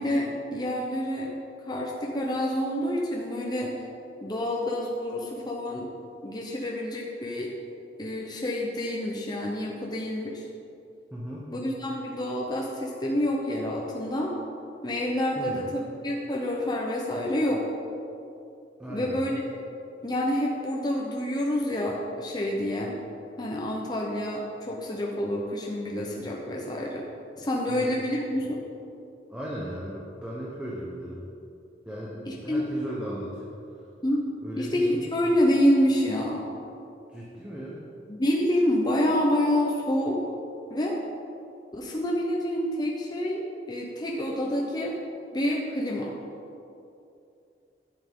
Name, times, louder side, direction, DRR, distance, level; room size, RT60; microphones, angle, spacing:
voice 1, 0.0-1.3 1.6-3.8 4.2-5.9 6.2-7.5 8.0-10.4 11.5-14.3 14.8-17.6 18.9-19.4 20.0-23.0 23.4-27.1 27.4-28.6 32.3-32.7 34.0-34.3 34.6-36.5 38.1-40.2 40.7-41.0 41.7-44.9 45.3-46.2, left 1 dB, 25° left, -2 dB, 0.8 m, -28 dB
voice 2, 11.1-11.5 15.4-15.6 18.8-19.1 27.7-27.9 29.3-31.2 31.9-33.5 34.4-35.0 37.1-37.8, equal, 5° right, -6 dB, 1.1 m, -36 dB
11.0 x 7.8 x 3.7 m, 2.7 s
head